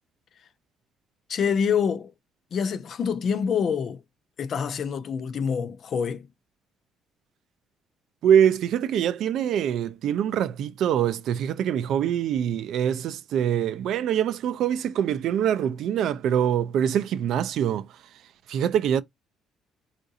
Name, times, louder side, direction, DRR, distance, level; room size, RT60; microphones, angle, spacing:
voice 1, 1.3-2.1 2.5-4.0 4.4-6.3, left 7 dB, 40° left, 0.4 m, -26 dB
voice 2, 8.2-17.9 18.5-19.0, right 9 dB, 55° right, 0.4 m, -24 dB
3.7 x 2.4 x 2.6 m
cardioid pair, 165°, 0 cm